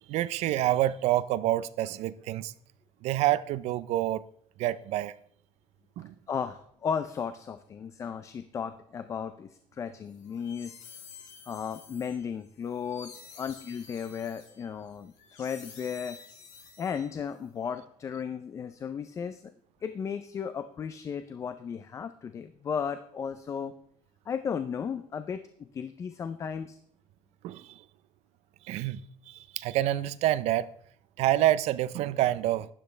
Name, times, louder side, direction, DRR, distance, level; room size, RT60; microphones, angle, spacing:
voice 1, 0.1-2.5 3.0-4.2 4.6-5.1 6.0-6.1 27.4-27.8 28.7-29.0 29.3-30.7 31.2-32.7, right 14 dB, 60° right, 0.5 m, -27 dB
voice 2, 6.3-10.8 11.5-15.1 15.4-16.2 16.8-19.4 19.8-23.7 24.3-26.8, left 7 dB, 25° left, 0.4 m, -35 dB
sound 1, 10.1-17.4, left 5 dB, 85° left, 5.5 m, -51 dB
12.0 x 10.5 x 3.3 m
cardioid pair, 175°, 13 cm